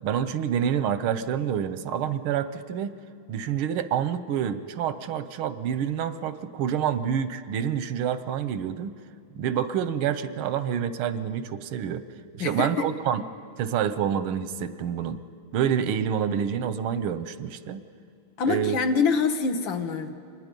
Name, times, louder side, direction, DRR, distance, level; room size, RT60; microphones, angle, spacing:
voice 1, 0.0-3.0 3.3-8.9 9.3-12.0 12.3-13.2 13.6-15.2 15.5-17.8 18.5-18.8, right 8 dB, 90° right, 13 dB, 1.6 m, -27 dB
voice 2, 12.4-12.9 18.4-20.2, left 5 dB, 70° left, 7 dB, 1.8 m, -25 dB
26.0 x 21.0 x 5.3 m, 2.3 s
omnidirectional pair, 2.3 m